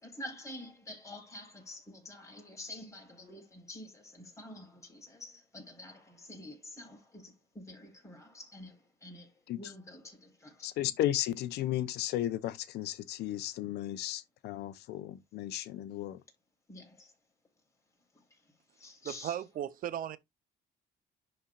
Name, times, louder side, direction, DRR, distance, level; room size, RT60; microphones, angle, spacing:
voice 1, 0.0-10.7 16.7-17.1 18.3-18.4 18.8-19.4, left 1 dB, 15° left, 4.8 m, -48 dB
voice 2, 10.6-16.2, left 13 dB, 80° left, 0.8 m, -34 dB
voice 3, 19.0-20.2, right 10 dB, 55° right, 0.7 m, -36 dB
11.0 x 4.4 x 2.4 m
cardioid pair, 110°, 17 cm